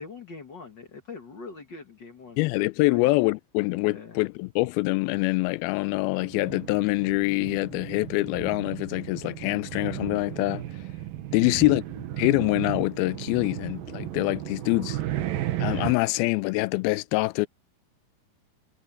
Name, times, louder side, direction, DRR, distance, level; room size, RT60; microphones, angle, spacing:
voice 1, 0.0-2.4 2.9-3.1 3.8-4.2 11.7-11.8, left 4 dB, 50° left, 1.3 m, -42 dB
voice 2, 2.4-10.7 11.3-11.8 12.2-15.0 15.6-17.5, left 23 dB, 85° left, 2.3 m, -25 dB
sound 1, 6.0-15.9, right 13 dB, 70° right, 2.9 m, -34 dB
omnidirectional pair, 4.5 m